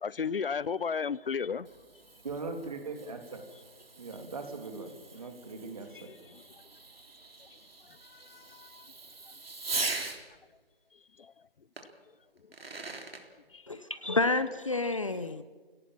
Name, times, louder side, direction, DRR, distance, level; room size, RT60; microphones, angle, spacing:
voice 1, 0.0-1.7 6.1-6.4 7.9-8.9 11.2-11.3 13.5-13.7, left 6 dB, 70° left, 0.6 m, -35 dB
Fireworks, 1.4-10.2 11.8-11.9 12.4-13.2, right 3 dB, 75° right, 3.6 m, -41 dB
voice 2, 2.2-3.4 4.0-6.1, right 3 dB, 40° right, 2.9 m, -40 dB
voice 3, 13.7-15.4, left 3 dB, 35° left, 0.7 m, -29 dB
26.0 x 18.0 x 7.5 m
hypercardioid pair, 170°, 30 cm